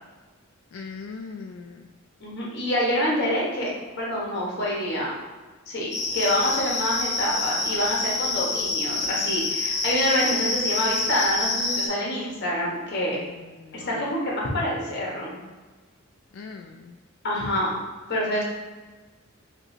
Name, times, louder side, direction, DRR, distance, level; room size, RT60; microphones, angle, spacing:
voice 1, 0.7-1.9 13.6-14.1 16.3-17.0, left 4 dB, 75° left, 3 dB, 0.3 m, -40 dB
voice 2, 2.2-3.7 4.0-5.1 5.7-13.2 13.7-15.4 17.2-17.7 18.1-18.4, equal, 55° left, -4 dB, 1.3 m, -26 dB
sound 1, 5.9-11.9, left 3 dB, 35° left, 1.0 m, -27 dB
5.2 x 2.9 x 2.8 m, 1.3 s
head